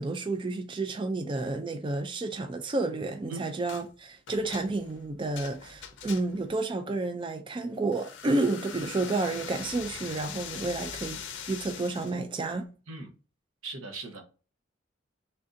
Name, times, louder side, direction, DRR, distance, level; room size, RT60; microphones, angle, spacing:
voice 1, 0.0-12.7, right 2 dB, 25° right, 0.3 m, -31 dB
sound 1, 3.7-3.9 4.3-6.5 7.9-12.2, left 7 dB, 60° left, 0.6 m, -42 dB
voice 2, 13.6-14.2, right 3 dB, 90° right, 0.9 m, -39 dB
3.3 x 2.6 x 3.7 m
head